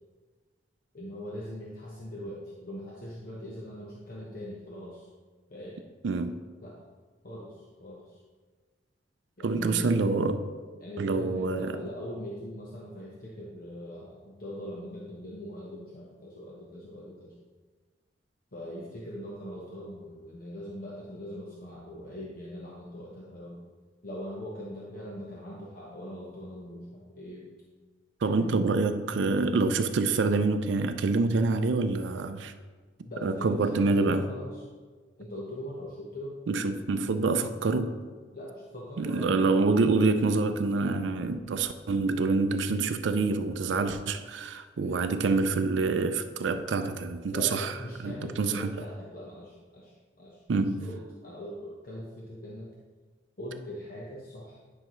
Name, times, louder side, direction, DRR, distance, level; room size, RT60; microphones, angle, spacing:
voice 1, 0.9-5.1 5.5-5.8 6.6-6.8 7.2-8.2 9.4-10.1 10.8-17.3 18.5-23.6 24.0-27.5 28.2-28.8 29.2-29.8 33.0-34.6 35.2-36.4 38.3-39.6 44.8-45.0 47.3-50.4 50.8-52.7 53.4-54.6, equal, 50° left, 1.0 m, -41 dB
voice 2, 6.0-6.4 9.4-10.4 11.0-11.8 28.2-32.5 33.2-34.2 36.5-37.9 39.0-47.7 48.0-48.8 50.5-50.8, right 3 dB, 75° right, 0.4 m, -26 dB
9.8 x 5.8 x 3.1 m
head